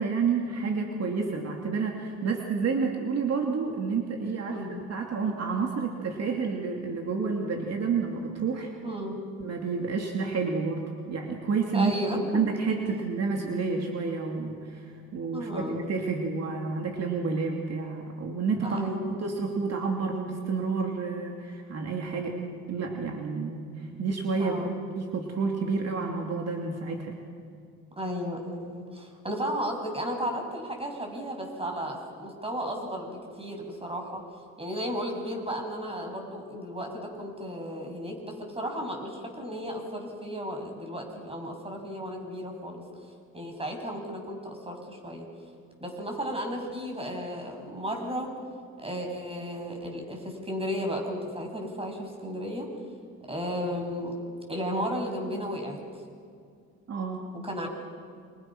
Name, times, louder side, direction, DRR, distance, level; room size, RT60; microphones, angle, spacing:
voice 1, 0.0-4.6 4.9-8.7 9.4-11.9 12.3-18.8 19.1-22.4 22.7-24.7 25.0-27.1 56.9-57.3, right 4 dB, 55° right, 1 dB, 2.9 m, -29 dB
voice 2, 4.5-4.8 8.8-9.2 11.7-12.2 15.3-15.9 18.6-19.1 24.4-24.8 28.0-34.2 34.6-42.8 43.3-45.3 45.8-48.3 48.8-52.7 53.3-54.1 54.5-55.8 57.4-57.7, equal, 20° right, 2 dB, 6.7 m, -34 dB
28.5 x 26.5 x 6.2 m, 2.2 s
cardioid pair, 90°, 30 cm